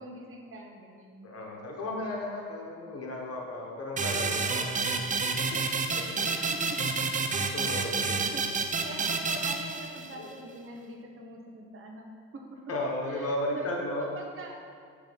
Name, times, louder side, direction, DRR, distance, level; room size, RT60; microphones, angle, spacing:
voice 1, 0.0-1.3 6.3-6.9 7.9-12.1 12.3-12.4 13.1-13.7 14.0-14.6, right 2 dB, 45° right, 1 dB, 1.2 m, -44 dB
voice 2, 1.2-4.9 7.5-8.3 10.2-10.3 12.7-14.1, left 1 dB, 50° left, -1 dB, 1.3 m, -34 dB
sound 1, 4.0-10.3, right 4 dB, 25° right, 0.5 m, -29 dB
7.3 x 3.5 x 5.3 m, 2.2 s
cardioid pair, 90°, 30 cm